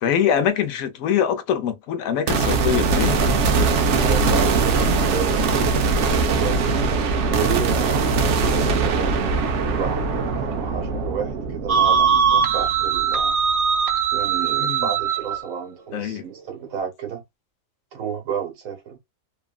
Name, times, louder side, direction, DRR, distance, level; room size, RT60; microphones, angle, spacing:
voice 1, 0.0-3.2 14.6-14.9 15.9-16.2, left 9 dB, 85° left, 1.1 m, -23 dB
sound 1, 2.3-13.6, right 4 dB, 65° right, 0.9 m, -21 dB
voice 2, 3.9-5.8 6.4-9.2 9.7-13.3 14.1-17.2 17.9-19.0, right 7 dB, 85° right, 1.4 m, -31 dB
sound 2, 11.7-15.4, right 7 dB, 45° right, 0.5 m, -20 dB
3.0 x 2.4 x 2.3 m
omnidirectional pair, 1.4 m